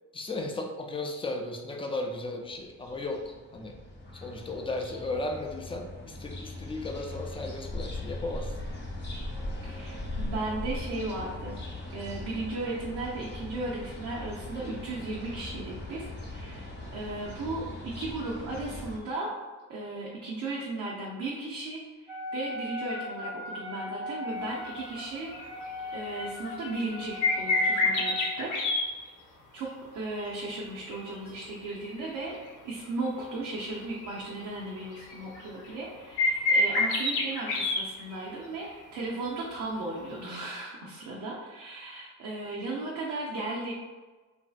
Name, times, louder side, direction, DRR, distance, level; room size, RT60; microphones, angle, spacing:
voice 1, 0.1-3.8 4.1-8.5, left 2 dB, 20° left, 2 dB, 0.4 m, -35 dB
sound 1, 2.5-19.0, left 1 dB, 35° left, 0.8 m, -39 dB
voice 2, 9.6-11.6 11.9-19.3 19.7-25.4 25.9-28.5 29.5-32.4 32.6-43.7, right 2 dB, 80° right, -4 dB, 0.6 m, -36 dB
Wind instrument woodwind instrument, 22.1-28.5, left 2 dB, 5° right, 0.7 m, -38 dB
sound 2, 25.3-25.7 26.1-28.8 30.9-32.1 32.5-32.6 34.0-34.2 34.7-35.9 36.2-38.3 38.7-38.8 40.2-40.3, left 3 dB, 80° left, 0.7 m, -27 dB
3.0 x 2.6 x 2.3 m, 1.3 s
cardioid pair, 95°, 30 cm